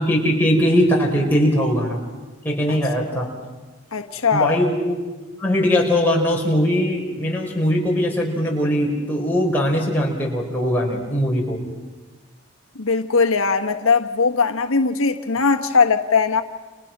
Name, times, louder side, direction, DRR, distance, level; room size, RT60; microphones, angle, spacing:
voice 1, 0.0-2.0 2.4-3.3 4.3-5.0 5.4-11.6, equal, 10° left, 5.1 m, -20 dB
voice 2, 3.9-4.6 12.7-16.4, left 4 dB, 90° left, 1.3 m, -19 dB
30.0 x 29.5 x 6.1 m
head